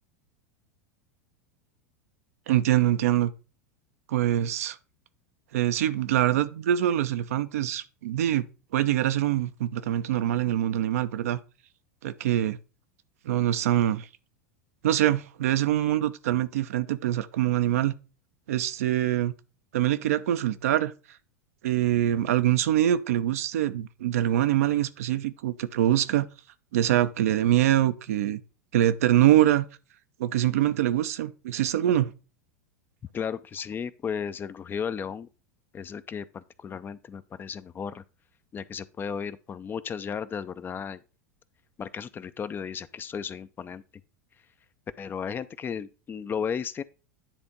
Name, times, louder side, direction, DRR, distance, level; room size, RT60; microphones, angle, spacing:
voice 1, 2.5-3.3 4.1-4.8 5.5-8.5 8.7-11.4 12.0-12.6 13.2-14.1 14.8-17.9 18.5-19.3 19.7-20.9 21.6-26.3 26.7-28.4 28.7-29.7 30.2-32.1, right 12 dB, 70° right, 0.6 m, -24 dB
voice 2, 33.1-35.3 35.7-38.0 38.5-41.0 41.8-43.8 45.0-46.8, left 7 dB, 25° left, 0.5 m, -34 dB
10.0 x 3.5 x 5.4 m
hypercardioid pair, 90°, 8 cm